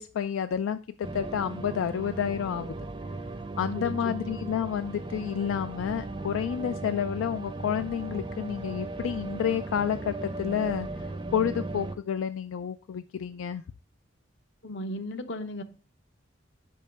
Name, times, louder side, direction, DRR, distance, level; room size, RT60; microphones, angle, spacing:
voice 1, 0.0-2.9 3.6-13.6, left 8 dB, 80° left, 0.3 m, -30 dB
sound 1, 1.0-11.9, right 2 dB, 25° right, 0.5 m, -37 dB
voice 2, 3.7-4.2 14.6-15.6, left 1 dB, 60° left, 0.7 m, -35 dB
5.4 x 5.4 x 5.0 m
head